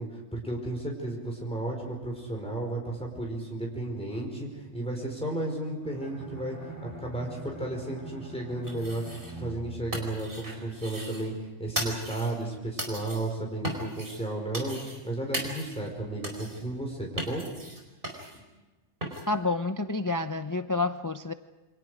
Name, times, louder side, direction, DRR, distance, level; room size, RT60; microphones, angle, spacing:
voice 1, 0.0-6.6 6.8-9.0 9.3-17.5 18.4-18.5, right 2 dB, 5° left, -1 dB, 4.9 m, -33 dB
Bowed string instrument, 5.8-10.8, right 1 dB, 15° right, 7.3 m, -44 dB
sound 1, 8.6-9.5 9.7-11.3 11.8-12.4 12.8-13.3 13.6-14.2 14.5-15.1 15.3-15.9 16.2-16.6 17.2-18.4 19.0-19.3, right 1 dB, 45° right, 4.9 m, -37 dB
voice 2, 19.3-21.3, left 3 dB, 20° left, 9 dB, 0.5 m, -29 dB
28.5 x 25.5 x 5.0 m, 1.1 s
omnidirectional pair, 1.2 m